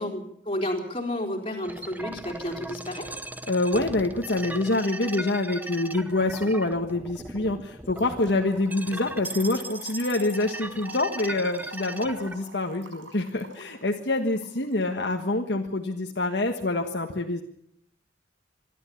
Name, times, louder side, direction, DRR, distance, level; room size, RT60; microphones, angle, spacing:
voice 1, 0.0-3.1, left 1 dB, 30° left, 2 dB, 3.9 m, -31 dB
sound 1, 1.6-12.4, right 2 dB, 10° right, 0.9 m, -38 dB
voice 2, 3.5-17.4, left 2 dB, 60° left, 3 dB, 1.5 m, -26 dB
Trickle dribble / Fill (with liquid), 8.0-15.1, right 3 dB, 90° right, 5.3 m, -49 dB
26.0 x 12.0 x 8.5 m, 0.73 s
head